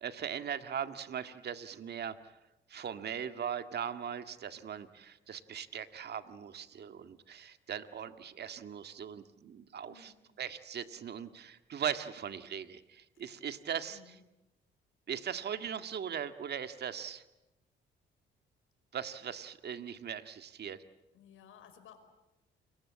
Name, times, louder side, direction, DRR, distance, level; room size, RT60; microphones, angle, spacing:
voice 1, 0.0-2.2 2.7-10.1 10.4-14.0 15.1-17.2 18.9-20.8, right 8 dB, 55° right, 9 dB, 1.9 m, -39 dB
voice 2, 9.9-10.2 13.9-14.2 21.1-22.0, left 8 dB, 85° left, 7 dB, 5.0 m, -57 dB
29.5 x 23.0 x 8.6 m, 0.96 s
cardioid pair, 90°, 20 cm